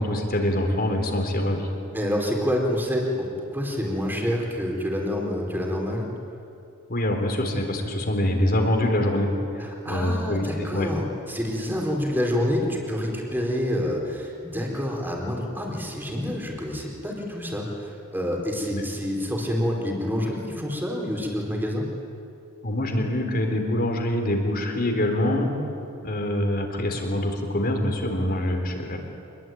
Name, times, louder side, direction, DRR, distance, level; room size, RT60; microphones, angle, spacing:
voice 1, 0.0-1.7 6.9-10.9 18.7-18.8 22.6-25.5 26.0-29.0, left 1 dB, 45° left, 4 dB, 3.9 m, -25 dB
voice 2, 1.9-6.1 9.6-21.8, equal, 10° right, 0 dB, 4.5 m, -27 dB
26.5 x 21.5 x 9.3 m, 2.7 s
head